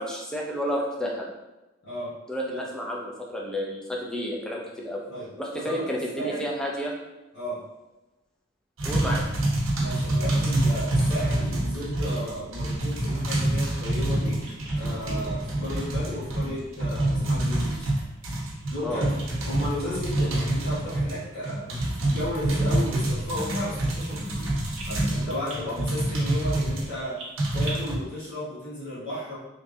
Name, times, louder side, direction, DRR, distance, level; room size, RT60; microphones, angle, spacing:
voice 1, 0.0-1.3 2.3-5.0 5.4-6.9 8.8-9.2 18.8-19.0, equal, 5° left, -3 dB, 0.5 m, -31 dB
voice 2, 1.8-2.2 2.5-2.6 5.1-5.3 5.5-5.8 6.1-6.4 7.3-7.7 9.7-14.4 14.7-17.9 18.7-19.2 19.4-24.5 24.8-27.2 27.5-29.4, left 1 dB, 55° left, -12 dB, 1.3 m, -34 dB
sound 1, 8.8-26.9 27.4-28.0, right 1 dB, 85° right, 0.8 m, -27 dB
Bird vocalization bird call bird song, 12.7-18.7 19.0-19.9 20.2-20.4 21.0-24.4 24.7-27.7, right 2 dB, 30° right, 0.8 m, -46 dB
3.2 x 3.2 x 2.7 m, 1.0 s
head